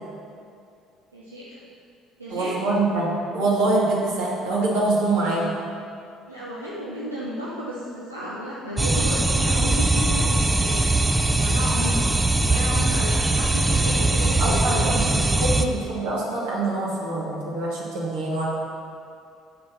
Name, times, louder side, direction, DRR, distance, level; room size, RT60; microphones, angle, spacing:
voice 1, 1.1-1.5 2.2-2.5 6.3-10.9 11.3-15.1, equal, 90° right, -8 dB, 0.9 m, -32 dB
voice 2, 2.3-5.5 14.4-18.4, right 2 dB, 65° right, -5 dB, 2.4 m, -24 dB
sound 1, 8.8-15.6, right 2 dB, 15° right, 0.6 m, -21 dB
8.0 x 6.9 x 7.0 m, 2.4 s
figure-of-eight pair, 55°, 0 cm